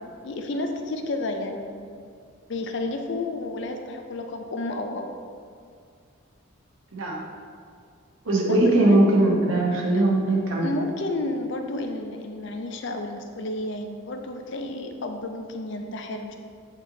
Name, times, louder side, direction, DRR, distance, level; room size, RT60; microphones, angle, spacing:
voice 1, 0.2-2.1 2.5-5.1 8.4-9.2 10.6-16.4, left 2 dB, 55° left, 5 dB, 0.5 m, -31 dB
voice 2, 6.9-7.2 8.2-10.7, right 2 dB, 70° right, -2 dB, 1.1 m, -20 dB
8.3 x 3.0 x 3.9 m, 2.2 s
head